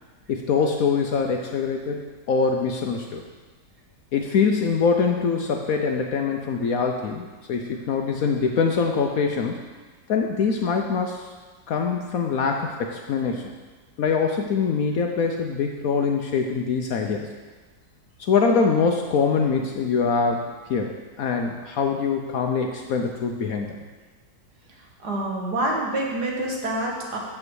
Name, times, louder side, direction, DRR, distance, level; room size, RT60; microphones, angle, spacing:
voice 1, 0.3-2.0 2.3-3.2 4.1-9.6 10.1-11.3 11.7-13.5 14.0-17.3 18.2-23.8, left 5 dB, 65° left, 3 dB, 0.9 m, -24 dB
voice 2, 25.0-27.2, right 1 dB, 65° right, -2 dB, 2.0 m, -26 dB
7.9 x 5.5 x 6.3 m, 1.3 s
omnidirectional pair, 1.9 m